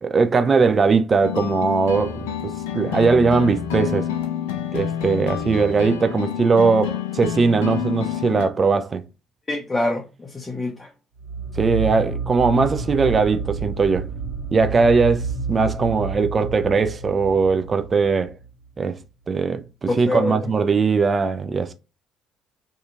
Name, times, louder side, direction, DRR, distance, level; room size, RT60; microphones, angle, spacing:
voice 1, 0.0-4.1 4.7-9.0 11.6-14.1 14.5-18.3 18.8-19.0 19.3-21.7, right 4 dB, 35° right, 0.4 m, -20 dB
sound 1, 1.2-8.5, left 9 dB, 80° left, 0.4 m, -28 dB
voice 2, 9.5-10.9 19.9-20.5, left 2 dB, 25° left, 0.5 m, -26 dB
sound 2, 11.2-18.5, right 4 dB, 60° right, 1.0 m, -29 dB
2.8 x 2.4 x 2.5 m
hypercardioid pair, 50°, 0 cm